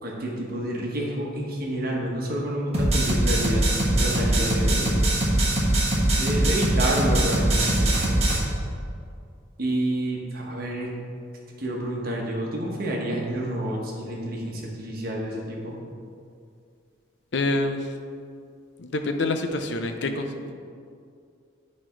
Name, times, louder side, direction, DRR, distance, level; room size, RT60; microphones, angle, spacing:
voice 1, 0.0-4.9 6.2-8.0 9.6-10.9 11.6-15.8, right 1 dB, 50° right, -2 dB, 1.3 m, -29 dB
sound 1, 2.7-8.4, right 1 dB, 30° right, 1.4 m, -22 dB
voice 2, 17.3-17.9 18.8-20.5, left 2 dB, 60° left, 6 dB, 0.6 m, -27 dB
9.4 x 4.3 x 4.5 m, 2.3 s
head